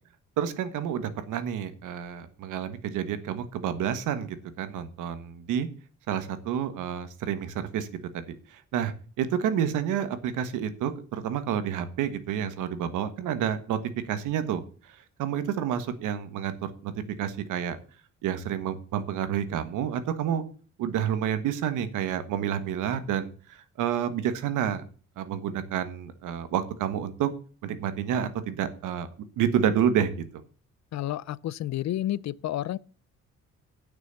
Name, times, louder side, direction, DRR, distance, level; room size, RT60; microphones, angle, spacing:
voice 1, 0.4-5.7 6.1-7.9 8.1-8.3 8.7-13.8 14.1-14.6 15.2-16.9 17.2-17.8 18.2-20.4 20.8-23.3 23.8-24.8 25.2-27.3 27.6-29.1 29.4-30.1, right 9 dB, 90° right, 1.4 m, -29 dB
voice 2, 30.9-32.8, left 13 dB, 65° left, 0.6 m, -30 dB
9.8 x 6.2 x 7.0 m
cardioid pair, 90°, 30 cm